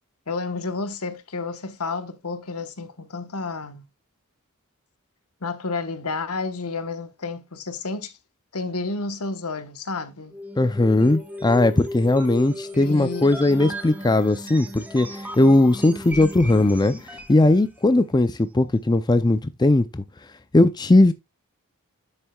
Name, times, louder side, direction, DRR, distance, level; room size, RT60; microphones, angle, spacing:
voice 1, 0.3-3.8 5.4-8.1 8.5-10.4 12.7-13.3, left 3 dB, 80° left, 1.2 m, -31 dB
sound 1, 10.3-17.5, equal, 5° right, 1.2 m, -35 dB
voice 2, 10.6-20.0 20.5-21.1, left 2 dB, 20° left, 0.5 m, -19 dB
10.0 x 7.4 x 2.3 m
head